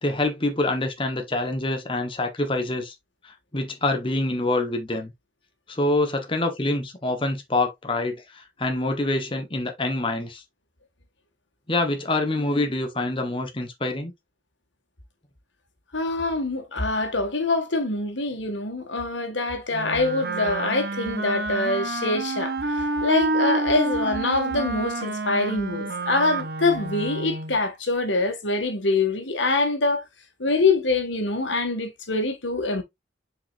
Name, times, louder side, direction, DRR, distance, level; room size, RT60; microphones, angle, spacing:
voice 1, 0.0-2.9 3.2-5.1 5.7-10.4 11.7-14.1, left 2 dB, 30° left, 1.3 m, -26 dB
voice 2, 15.9-30.0 30.4-32.8, left 3 dB, 85° left, 2.1 m, -25 dB
Wind instrument woodwind instrument, 19.7-27.6, right 2 dB, 55° right, 1.1 m, -28 dB
6.9 x 5.2 x 2.6 m
head